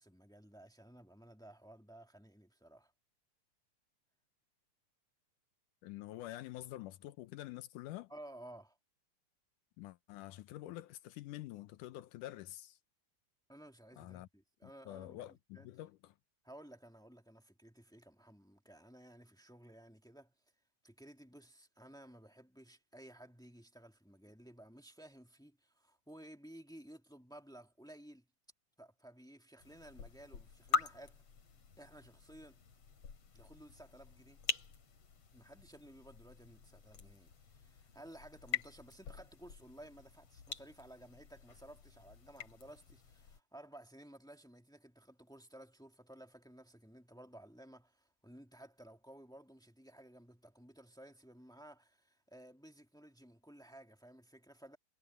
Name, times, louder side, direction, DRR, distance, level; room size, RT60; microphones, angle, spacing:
voice 1, 0.0-2.9 8.1-8.8 13.5-15.2 15.5-15.7 16.4-20.3 20.8-28.3 28.8-31.2 31.8-32.6 33.3-34.4 35.3-54.8, right 1 dB, ahead, 1.2 m, -56 dB
voice 2, 5.8-8.1 9.8-12.8 14.0-14.3 14.6-16.2, left 15 dB, 85° left, 2.3 m, -47 dB
sound 1, 29.6-43.4, left 6 dB, 50° left, 3.5 m, -44 dB
omnidirectional pair, 3.6 m